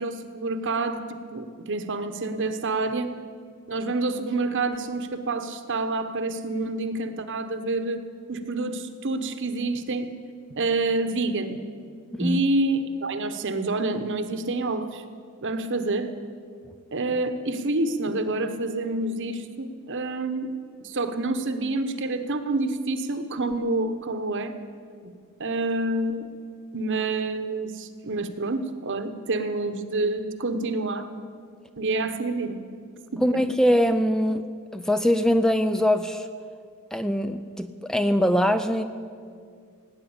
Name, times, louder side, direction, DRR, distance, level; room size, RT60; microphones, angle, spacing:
voice 1, 0.0-3.1 3.7-8.0 8.3-10.1 10.6-11.6 12.2-15.0 15.4-16.2 16.9-20.5 20.8-24.5 25.0-25.1 25.4-26.3 26.7-31.1 31.8-32.6 33.1-33.4, right 2 dB, 55° right, 9 dB, 1.0 m, -28 dB
voice 2, 33.2-34.4 34.7-36.3 36.9-38.8, equal, 5° left, 9 dB, 0.4 m, -22 dB
17.5 x 9.2 x 8.7 m, 2.2 s
head